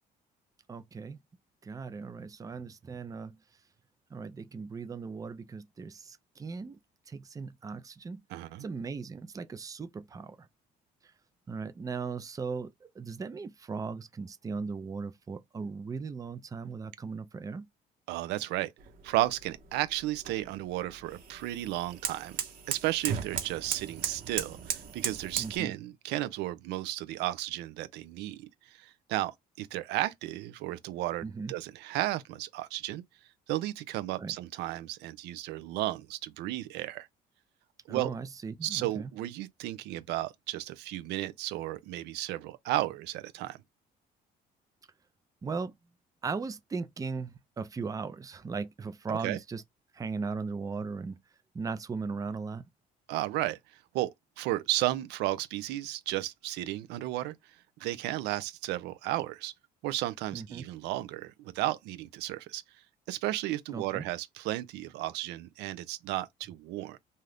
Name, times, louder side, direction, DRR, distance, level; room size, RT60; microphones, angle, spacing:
voice 1, 0.7-1.2 1.6-3.4 4.1-6.8 7.1-8.2 8.6-10.5 11.5-17.7 25.4-25.7 31.2-31.5 34.2-34.4 37.9-39.1 45.4-45.7 46.2-49.6 49.9-51.2 51.5-52.7 60.3-60.6 63.7-64.0, right 4 dB, 20° right, 0.5 m, -38 dB
voice 2, 8.3-8.6 18.1-18.7 19.0-22.4 22.7-29.3 29.6-33.0 33.5-37.1 37.9-38.1 38.6-43.6 49.1-49.4 53.1-53.6 53.9-54.1 54.4-57.3 57.8-59.5 59.8-62.6 63.1-67.0, right 15 dB, 90° right, 0.5 m, -33 dB
sound 1, 18.8-25.6, right 7 dB, 55° right, 1.0 m, -37 dB
2.7 x 2.4 x 3.3 m
cardioid pair, 110°, 17 cm